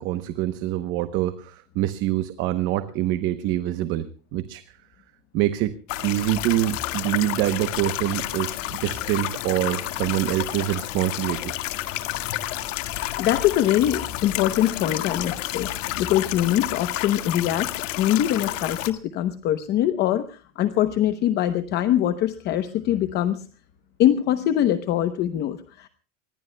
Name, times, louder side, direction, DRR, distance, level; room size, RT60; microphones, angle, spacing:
voice 1, 0.0-4.8 5.3-5.7 6.0-11.5, right 14 dB, 35° right, 11 dB, 0.9 m, -25 dB
sound 1, 5.9-18.9, left 14 dB, 90° left, 1.9 m, -30 dB
voice 2, 12.9-17.7 18.0-23.5 24.0-25.9, left 12 dB, 30° left, 11 dB, 0.8 m, -23 dB
25.5 x 21.5 x 2.2 m, 0.39 s
supercardioid pair, 175°, 37 cm